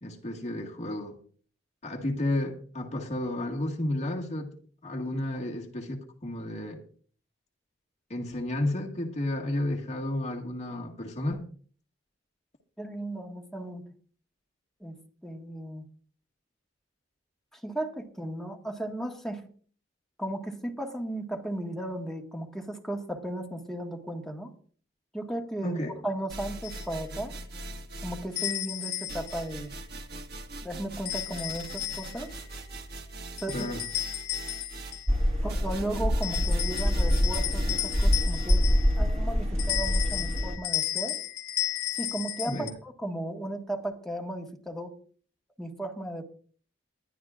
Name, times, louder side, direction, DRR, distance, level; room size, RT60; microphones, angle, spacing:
voice 1, 0.0-1.2 1.8-6.8 8.1-11.5 25.6-25.9 33.5-33.9 42.5-42.7, left 1 dB, 35° left, 1 dB, 1.8 m, -32 dB
voice 2, 12.8-13.8 14.8-15.8 17.5-19.4 20.2-24.5 25.1-27.3 28.0-29.7 30.6-32.3 33.4-33.6 35.4-38.7 39.0-41.2 41.9-44.9 45.6-46.2, right 1 dB, ahead, 1 dB, 1.6 m, -35 dB
sound 1, 26.3-28.6 29.1-38.6, right 2 dB, 55° right, 1.6 m, -42 dB
sound 2, 26.6-26.8 28.4-29.4 31.0-32.3 33.4-35.2 36.2-39.1 39.6-42.7, left 12 dB, 55° left, 2.9 m, -33 dB
sound 3, 35.1-40.6, equal, 35° right, 2.2 m, -25 dB
20.5 x 11.5 x 2.5 m, 0.43 s
head